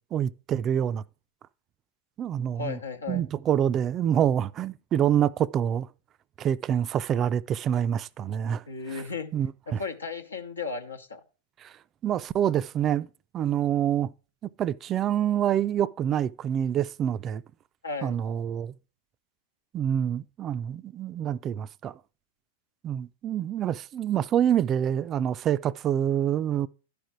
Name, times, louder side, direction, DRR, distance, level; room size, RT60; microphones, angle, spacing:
voice 1, 0.1-1.0 2.2-2.8 3.1-5.9 6.4-9.0 9.3-9.8 11.6-11.7 12.0-13.1 13.3-14.1 14.6-17.4 18.0-18.7 19.7-22.0 22.8-26.7, right 10 dB, 30° right, 0.3 m, -26 dB
voice 2, 2.5-3.2 8.7-9.3 9.7-11.2 17.8-18.2, left 4 dB, 85° left, 1.0 m, -35 dB
11.5 x 5.1 x 4.5 m
hypercardioid pair, 100°, 0 cm